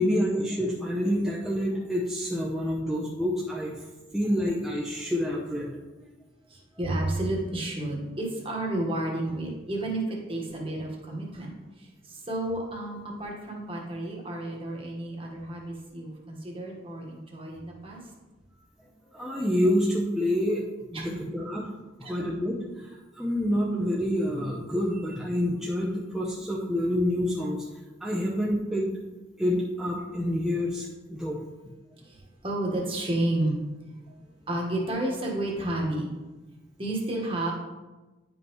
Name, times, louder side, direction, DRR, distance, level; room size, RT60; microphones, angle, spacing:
voice 1, 0.0-3.8 4.1-5.8 19.1-20.6 20.9-21.7 22.1-27.7 28.0-28.9 29.4-31.4, equal, ahead, -5 dB, 0.7 m, -27 dB
voice 2, 6.5-11.5 11.8-18.0 20.9-21.2 22.0-22.3 32.0-33.6 34.5-36.1 36.8-37.5, right 1 dB, 30° right, -1 dB, 1.4 m, -31 dB
10.5 x 5.3 x 3.1 m, 1.2 s
head